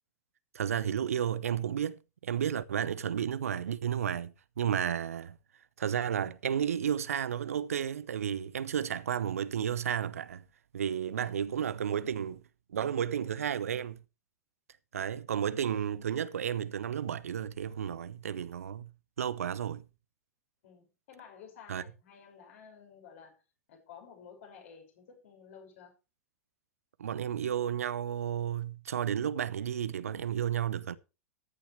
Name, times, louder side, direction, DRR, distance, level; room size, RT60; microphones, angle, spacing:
voice 1, 0.5-5.4 5.8-10.4 10.7-12.4 12.7-14.0 14.9-18.9 19.2-19.8 21.7-21.8 27.0-31.0, right 9 dB, 70° right, 0.8 m, -32 dB
voice 2, 20.6-23.4 23.7-25.9, left 7 dB, 60° left, 6.2 m, -53 dB
14.0 x 10.0 x 3.3 m
figure-of-eight pair, 95°, 8 cm